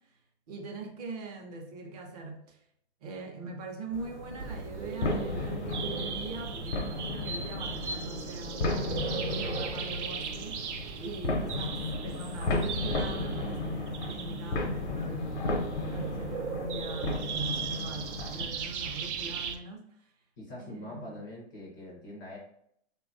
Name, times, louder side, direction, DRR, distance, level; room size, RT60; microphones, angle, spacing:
voice 1, 0.5-2.6 3.0-10.7 11.0-20.1 20.6-21.2, right 3 dB, 35° right, 2 dB, 0.5 m, -42 dB
sound 1, 3.9-18.4, left 2 dB, 85° left, 0.7 m, -34 dB
sound 2, 4.4-19.6, right 6 dB, 85° right, 0.5 m, -38 dB
voice 2, 11.2-11.6 20.4-22.4, left 1 dB, 20° left, -4 dB, 0.4 m, -43 dB
3.3 x 2.2 x 2.5 m, 0.71 s
hypercardioid pair, 160°, 34 cm